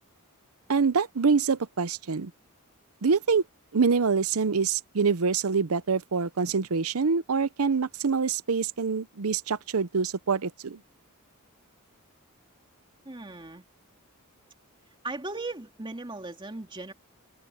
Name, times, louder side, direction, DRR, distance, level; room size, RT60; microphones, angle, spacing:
voice 1, 0.7-2.3 3.0-3.4 3.7-10.8, right 5 dB, 70° right, 0.7 m, -25 dB
voice 2, 13.0-13.7 15.0-16.9, right 2 dB, 20° right, 2.3 m, -37 dB
open air
head